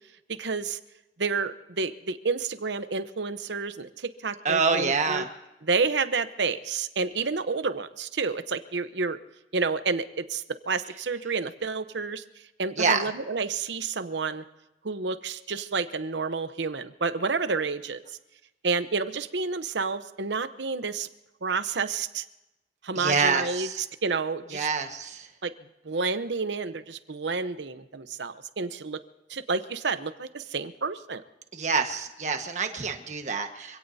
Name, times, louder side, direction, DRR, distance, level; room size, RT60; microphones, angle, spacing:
voice 1, 0.3-0.8 1.2-5.2 5.6-9.2 9.5-12.2 12.6-14.4 14.8-18.0 18.6-21.1 21.4-22.2 22.8-24.7 25.4-25.5 25.8-29.0 29.3-31.2, right 4 dB, 85° right, 11 dB, 0.9 m, -30 dB
voice 2, 4.4-5.3 12.8-13.1 22.9-23.8 24.5-25.3 31.5-33.8, right 5 dB, 40° right, 5 dB, 1.4 m, -26 dB
26.0 x 17.0 x 2.8 m, 0.97 s
head